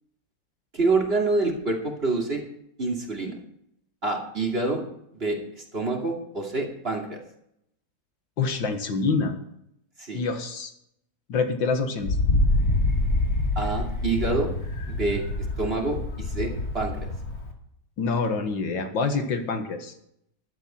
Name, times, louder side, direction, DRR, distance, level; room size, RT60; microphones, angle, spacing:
voice 1, 0.7-2.4 2.8-3.3 4.0-4.8 5.1-7.2 10.0-10.2 13.6-14.5 14.9-15.2 15.6-17.1, right 3 dB, 30° right, 0 dB, 2.8 m, -27 dB
voice 2, 8.4-9.3 10.1-10.7 11.3-12.2 18.0-19.9, left 4 dB, 85° left, 6 dB, 2.2 m, -26 dB
Wind, 12.0-17.5, left 2 dB, 55° left, 2.7 m, -26 dB
14.0 x 12.0 x 4.5 m, 0.75 s
omnidirectional pair, 2.0 m